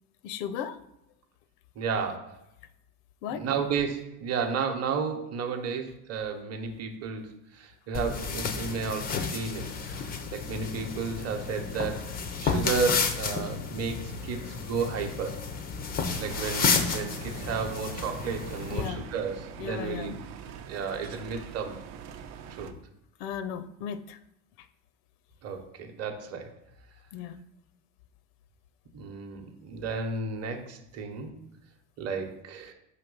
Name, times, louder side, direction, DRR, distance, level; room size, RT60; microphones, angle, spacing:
voice 1, 0.2-0.8 3.2-3.5 18.7-19.1 19.6-20.1 23.2-24.2 24.6-24.7 27.1-27.4, left 8 dB, 90° left, 13 dB, 0.6 m, -36 dB
voice 2, 1.8-2.3 3.3-7.3 7.5-15.4 16.2-20.2 20.7-21.8 22.5-22.7 25.4-26.5 28.9-31.3 32.0-32.7, right 5 dB, 30° right, 4 dB, 0.8 m, -33 dB
sound 1, 7.9-18.9, left 5 dB, 25° left, 0.3 m, -31 dB
sound 2, 16.1-22.7, right 8 dB, 85° right, 0.7 m, -43 dB
5.9 x 3.1 x 5.3 m, 0.83 s
cardioid pair, 140°, 47 cm